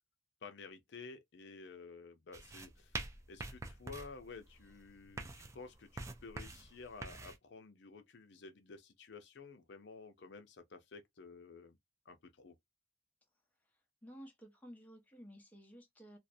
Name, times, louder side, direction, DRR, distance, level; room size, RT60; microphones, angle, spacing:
voice 1, 0.4-11.8 12.1-12.6, left 4 dB, 65° left, 0.5 m, -52 dB
sound 1, 2.3-7.4, right 3 dB, 15° right, 0.3 m, -46 dB
voice 2, 14.0-16.2, equal, 10° left, 0.7 m, -54 dB
2.4 x 2.0 x 2.6 m
head